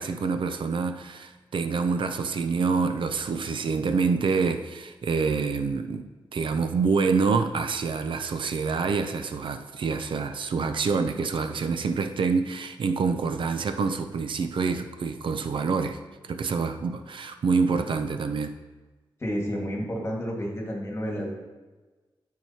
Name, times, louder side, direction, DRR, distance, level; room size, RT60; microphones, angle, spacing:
voice 1, 0.0-16.0 16.3-18.5, right 4 dB, 65° right, 8 dB, 0.5 m, -27 dB
voice 2, 19.2-21.4, equal, 30° left, -1 dB, 1.7 m, -30 dB
12.5 x 4.7 x 2.8 m, 1.2 s
wide cardioid pair, 110°, 9 cm